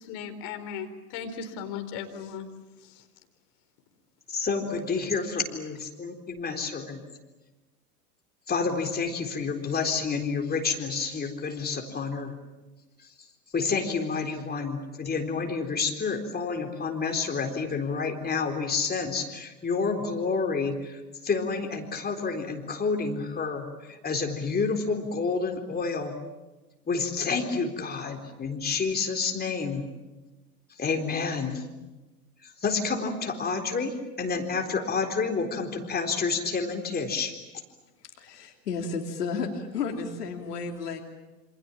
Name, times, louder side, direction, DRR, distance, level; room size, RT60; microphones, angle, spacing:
voice 1, 0.0-2.5 2.8-3.0, left 7 dB, 50° left, 7 dB, 4.4 m, -37 dB
voice 2, 4.3-7.0 8.5-12.3 13.5-26.2 26.9-29.9 30.8-31.6 32.4-37.3, left 4 dB, 20° left, 4 dB, 4.0 m, -29 dB
voice 3, 38.2-41.0, left 5 dB, 75° left, 4 dB, 3.2 m, -32 dB
28.0 x 26.0 x 7.4 m, 1.1 s
hypercardioid pair, 85°, 47 cm